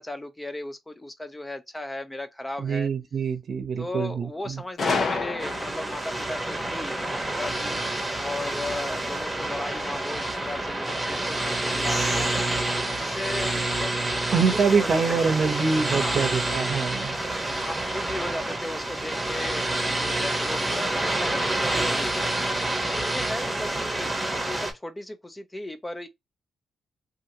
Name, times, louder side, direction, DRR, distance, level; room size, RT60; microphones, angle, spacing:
voice 1, 0.0-2.9 3.8-7.8 8.2-14.0 14.3-15.2 15.8-16.3 17.5-22.2 22.9-26.1, left 1 dB, 15° left, 0.5 m, -36 dB
voice 2, 2.6-4.6 14.3-17.2, right 5 dB, 60° right, 0.7 m, -25 dB
Gunshot gunfire, 4.8-6.0, left 4 dB, 55° left, 0.7 m, -27 dB
sound 1, 5.4-24.7, right 1 dB, 10° right, 1.0 m, -28 dB
2.8 x 2.7 x 2.7 m
cardioid pair, 90°, 0 cm